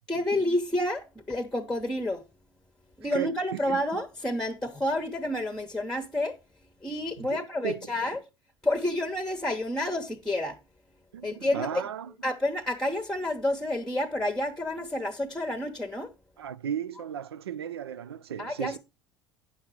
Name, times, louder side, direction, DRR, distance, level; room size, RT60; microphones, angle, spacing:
voice 1, 0.1-2.2 3.0-6.4 6.8-8.2 8.6-10.6 11.2-11.7 12.2-16.1 18.4-18.8, left 1 dB, 5° left, 1.0 m, -29 dB
voice 2, 3.1-3.8 7.2-7.8 11.1-12.1 16.4-18.8, right 9 dB, 80° right, 0.4 m, -35 dB
9.5 x 5.7 x 4.5 m
figure-of-eight pair, 70°, 13 cm